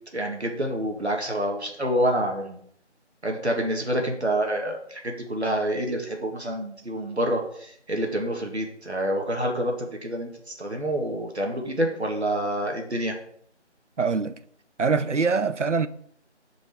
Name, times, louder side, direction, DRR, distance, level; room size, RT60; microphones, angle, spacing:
voice 1, 0.1-2.6 3.2-13.2, right 1 dB, 65° right, 2.0 m, -27 dB
voice 2, 14.0-14.4 14.8-15.9, right 4 dB, 80° right, 0.8 m, -23 dB
7.8 x 5.2 x 6.9 m
figure-of-eight pair, 180°, 35 cm